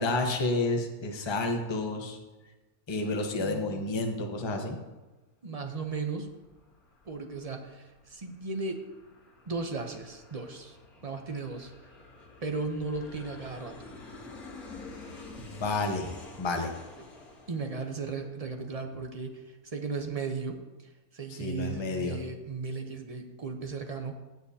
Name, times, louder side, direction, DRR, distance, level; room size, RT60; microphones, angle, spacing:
voice 1, 0.0-2.2 2.9-4.8 15.4-16.7 21.3-22.2, left 2 dB, 20° left, 3 dB, 0.8 m, -30 dB
voice 2, 3.4-3.9 5.4-6.3 7.1-7.8 8.1-8.8 9.5-10.7 11.0-11.7 12.4-13.8 17.5-19.4 19.7-20.6 21.1-24.2, right 4 dB, 35° right, 4 dB, 0.7 m, -35 dB
Aircraft, 5.9-18.9, left 3 dB, 80° left, 2.2 m, -50 dB
16.0 x 7.1 x 2.8 m, 1.2 s
omnidirectional pair, 1.5 m